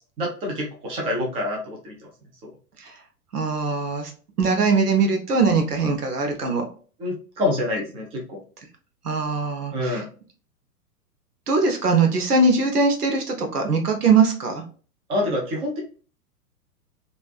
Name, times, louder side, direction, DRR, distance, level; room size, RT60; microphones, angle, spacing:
voice 1, 0.2-2.0 7.0-8.4 9.7-10.1 15.1-15.8, left 1 dB, 10° right, -1 dB, 0.6 m, -26 dB
voice 2, 3.3-4.1 4.4-6.7 9.0-10.0 11.5-14.6, right 4 dB, 75° right, 4 dB, 0.9 m, -21 dB
3.2 x 2.6 x 2.4 m, 0.39 s
figure-of-eight pair, 105°, 47 cm